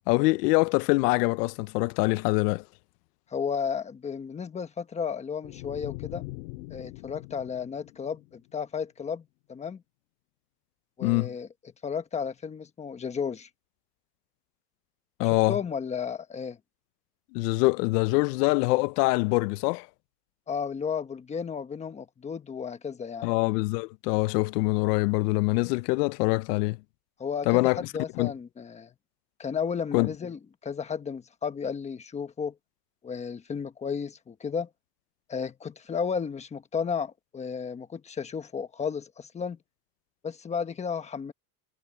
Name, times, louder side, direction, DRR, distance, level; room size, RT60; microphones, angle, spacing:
voice 1, 0.1-2.6 11.0-11.3 15.2-15.6 17.3-19.9 23.2-26.8 27.5-27.8 28.2-28.3 29.9-30.1, left 24 dB, 90° left, 0.7 m, -24 dB
voice 2, 3.3-6.2 6.7-9.8 11.0-11.5 11.8-13.5 15.5-16.6 20.5-23.3 27.2-28.9 29.4-32.5 33.0-34.7 35.3-39.6 40.2-41.3, left 6 dB, 15° left, 1.2 m, -33 dB
sound 1, 5.4-8.7, left 22 dB, 65° left, 2.3 m, -42 dB
cardioid pair, 170°, 46 cm